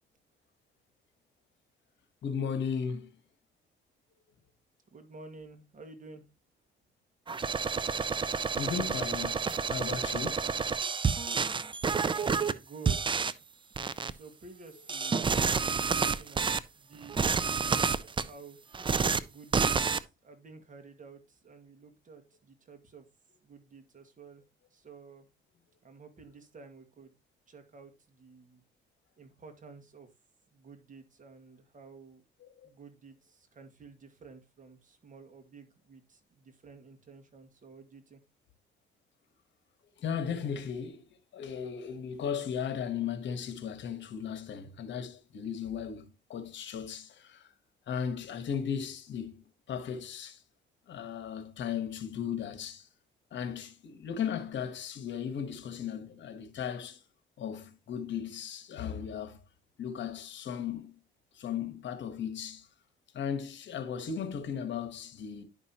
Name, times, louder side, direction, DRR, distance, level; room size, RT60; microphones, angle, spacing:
voice 1, 2.2-3.1 8.6-10.5 32.4-32.7 40.0-41.0 41.3-47.5 47.9-49.4 49.7-50.4 50.9-52.9 53.3-57.0 57.4-59.4 59.8-60.9 61.3-62.7 63.1-65.4, left 7 dB, 65° left, 1.4 m, -36 dB
voice 2, 4.9-6.2 12.0-13.2 14.1-18.6 19.2-23.1 23.4-24.4 24.7-25.3 25.8-27.1 27.5-28.6 29.2-30.1 30.5-32.2 32.6-38.2, right 4 dB, 40° right, 1.9 m, -52 dB
sound 1, 7.3-12.5 12.8-13.3 13.7-14.1 14.9-16.6 17.0-18.2 18.7-19.2 19.5-20.0, right 5 dB, 25° right, 0.5 m, -29 dB
10.5 x 5.3 x 2.9 m
cardioid pair, 90°, 20 cm